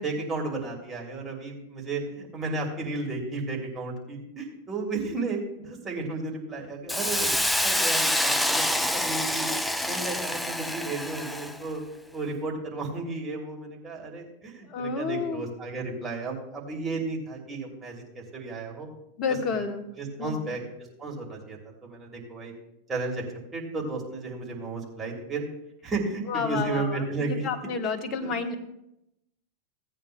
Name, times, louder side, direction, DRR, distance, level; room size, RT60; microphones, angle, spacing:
voice 1, 0.0-7.3 7.6-9.5 9.9-11.8 12.1-18.9 19.5-19.6 20.0-20.6 21.0-22.5 22.9-23.2 23.5-25.4 25.8-27.4 28.2-28.3, right 3 dB, 20° right, -2 dB, 3.1 m, -33 dB
Hiss, 6.9-11.6, left 1 dB, 5° left, 0.5 m, -26 dB
voice 2, 14.7-15.5 19.2-19.9 20.2-20.5 26.2-28.6, left 5 dB, 30° left, 6 dB, 1.3 m, -30 dB
17.5 x 9.0 x 2.3 m, 0.82 s
figure-of-eight pair, 90°, 0 cm